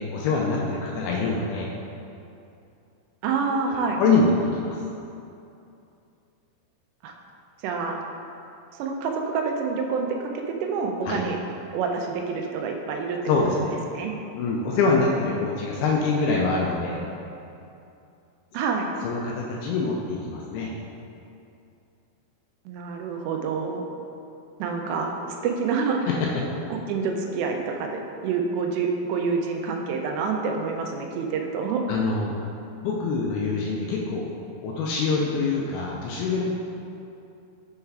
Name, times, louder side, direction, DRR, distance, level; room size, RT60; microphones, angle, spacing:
voice 1, 0.0-1.7 3.7-4.8 11.1-11.2 13.3-13.7 14.4-17.1 19.0-20.7 26.1-26.3 31.9-32.3 32.8-34.2 34.6-36.4, left 4 dB, 85° left, -2 dB, 2.2 m, -25 dB
voice 2, 3.2-4.0 7.0-7.2 7.6-8.0 8.7-11.4 11.7-13.2 13.9-14.1 18.5-18.9 22.7-23.9 24.6-26.0 26.7-31.8, right 5 dB, 90° right, 2 dB, 2.7 m, -27 dB
6.5 x 4.6 x 3.3 m, 2.7 s
omnidirectional pair, 4.8 m